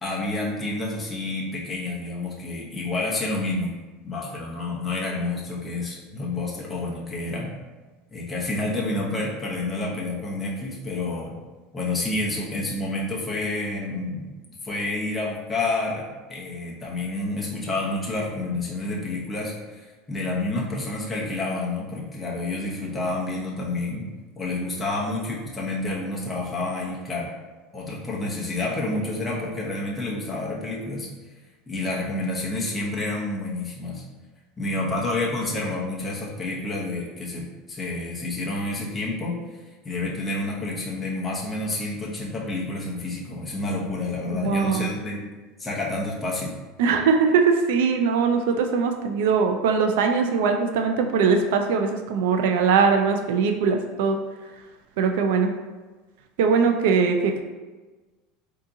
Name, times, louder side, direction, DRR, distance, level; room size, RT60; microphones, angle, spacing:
voice 1, 0.0-3.8 4.0-7.5 8.1-11.4 11.7-14.2 14.6-24.1 24.4-27.3 27.7-31.1 31.7-34.0 34.6-39.3 39.8-45.2 45.6-46.5, left 2 dB, 10° left, -5 dB, 0.7 m, -29 dB
voice 2, 44.3-44.9 46.8-54.2 55.0-55.5 56.4-57.4, right 5 dB, 80° right, 4 dB, 0.3 m, -21 dB
3.5 x 2.8 x 2.6 m, 1.3 s
supercardioid pair, 145°, 0 cm